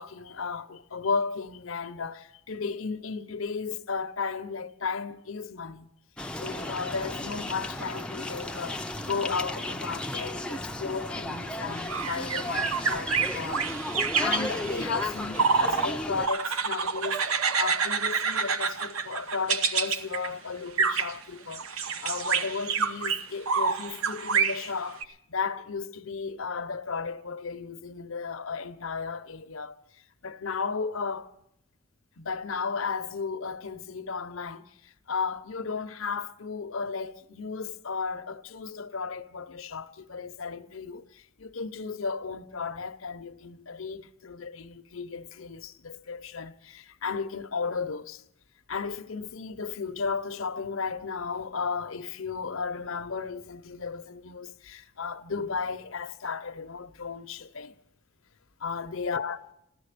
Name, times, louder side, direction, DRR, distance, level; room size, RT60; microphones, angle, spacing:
voice 1, 0.0-5.9 6.4-17.3 17.6-29.8 30.2-31.3 32.2-48.2 48.7-57.8 58.6-59.4, left 5 dB, 75° left, 0.8 m, -34 dB
sound 1, 6.2-16.3, left 1 dB, 5° left, 0.5 m, -34 dB
sound 2, 11.8-15.9 16.2-20.3 20.8-21.2 21.5-25.0, right 5 dB, 85° right, 0.9 m, -28 dB
14.5 x 14.0 x 6.7 m
head